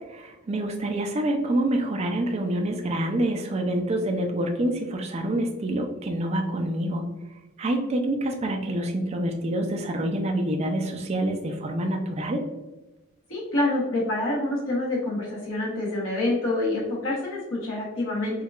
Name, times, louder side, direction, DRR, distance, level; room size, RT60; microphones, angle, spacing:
voice 1, 0.2-7.1 7.6-12.4, right 1 dB, 30° right, 3 dB, 0.3 m, -27 dB
voice 2, 13.3-18.4, left 2 dB, 70° left, -6 dB, 1.0 m, -27 dB
4.4 x 2.2 x 2.3 m, 1.1 s
head